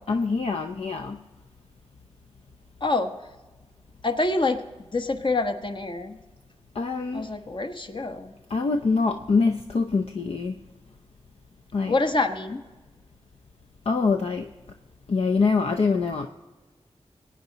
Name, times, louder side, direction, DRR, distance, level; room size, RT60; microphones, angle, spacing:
voice 1, 0.1-1.2 6.8-7.3 8.5-10.6 11.7-11.9 13.9-14.5 15.1-16.3, left 4 dB, 60° left, 6 dB, 0.6 m, -24 dB
voice 2, 2.8-3.1 4.0-4.6 4.9-6.2 7.1-8.3 11.9-12.6, left 2 dB, 45° left, 6 dB, 1.1 m, -26 dB
22.0 x 9.2 x 4.0 m, 1.2 s
wide cardioid pair, 85°, 11 cm